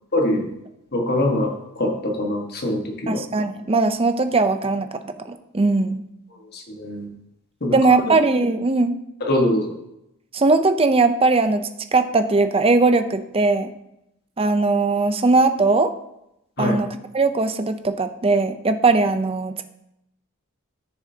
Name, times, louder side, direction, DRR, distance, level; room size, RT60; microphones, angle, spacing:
voice 1, 0.1-0.4 0.9-3.2 6.5-7.1 7.6-7.7 9.2-9.6 16.6-16.8, left 1 dB, 50° left, 1 dB, 1.6 m, -23 dB
voice 2, 3.1-5.0 5.3-6.0 7.7-9.0 10.3-11.6 11.9-13.7 14.4-15.9 16.6-16.9 17.1-19.6, right 3 dB, 25° right, 8 dB, 0.6 m, -19 dB
14.0 x 6.8 x 2.8 m, 0.84 s
head